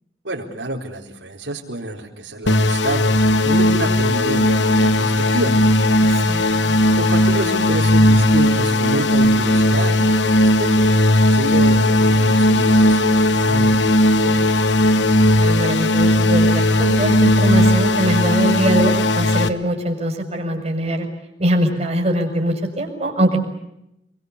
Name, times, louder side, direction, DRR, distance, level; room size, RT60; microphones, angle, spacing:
voice 1, 0.2-5.6 6.9-10.7 11.3-14.6, right 1 dB, 80° right, 0 dB, 4.3 m, -28 dB
sound 1, 2.5-19.5, left 1 dB, 80° left, 1.3 m, -16 dB
voice 2, 6.0-6.7 15.4-21.1 21.4-23.4, right 1 dB, 35° right, 3 dB, 6.6 m, -22 dB
28.0 x 23.5 x 8.3 m, 0.86 s
head